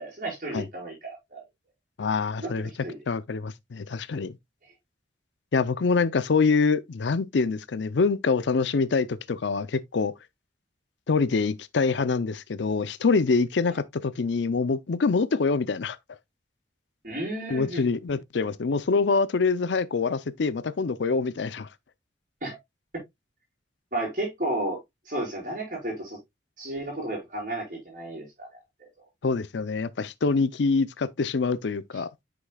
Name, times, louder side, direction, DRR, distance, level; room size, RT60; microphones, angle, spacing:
voice 1, 0.0-1.4 2.4-3.0 17.0-17.9 22.4-22.6 23.9-24.8 25.0-26.2 26.6-28.6, right 1 dB, 45° right, 4.9 m, -33 dB
voice 2, 2.0-2.7 3.1-4.4 5.5-10.1 11.1-16.0 17.5-21.7 29.2-32.1, left 4 dB, 70° left, 0.5 m, -25 dB
8.1 x 6.0 x 2.3 m
head